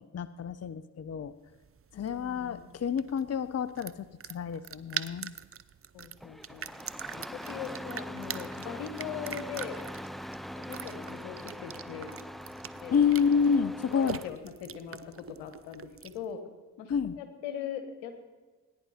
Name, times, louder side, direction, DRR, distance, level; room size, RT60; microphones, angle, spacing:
voice 1, 0.0-1.3 1.9-5.3 12.9-14.2 16.9-17.1, left 6 dB, 35° left, 15 dB, 0.7 m, -29 dB
sound 1, 1.5-16.3, right 8 dB, 30° right, 0.7 m, -43 dB
voice 2, 1.9-2.7 5.9-6.8 7.1-9.8 10.6-12.1 12.7-13.0 13.5-16.4 16.8-18.1, left 8 dB, 80° left, 8 dB, 1.5 m, -41 dB
Engine starting, 6.2-14.3, equal, ahead, 0.3 m, -42 dB
19.0 x 10.5 x 4.3 m, 1.3 s
hypercardioid pair, 45°, 43 cm